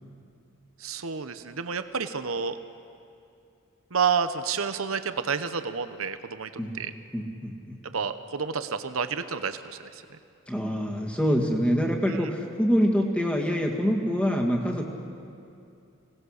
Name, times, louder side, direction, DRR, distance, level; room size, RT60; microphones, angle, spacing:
voice 1, 0.8-2.6 3.9-6.9 7.9-10.0 12.1-12.2, right 6 dB, 85° right, 10 dB, 0.9 m, -30 dB
voice 2, 7.1-7.8 10.5-14.9, equal, 5° left, 0 dB, 2.0 m, -25 dB
26.0 x 18.5 x 6.5 m, 2.6 s
head